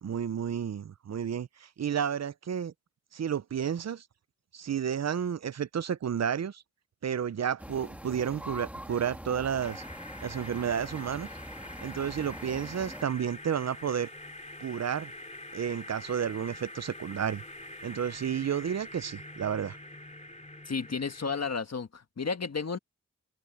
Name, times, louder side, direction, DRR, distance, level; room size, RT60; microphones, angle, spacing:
voice 1, 0.0-2.7 3.1-4.0 4.5-6.6 7.0-9.8 10.2-11.3 11.8-14.1 14.6-15.1 15.5-17.4 17.8-19.8, right 8 dB, 60° right, 0.5 m, -31 dB
sound 1, 7.6-13.0, equal, 5° right, 1.9 m, -44 dB
sound 2, 9.6-21.5, left 2 dB, 25° left, 2.7 m, -45 dB
voice 2, 20.6-22.8, left 5 dB, 60° left, 1.5 m, -32 dB
wide cardioid pair, 70°, 29 cm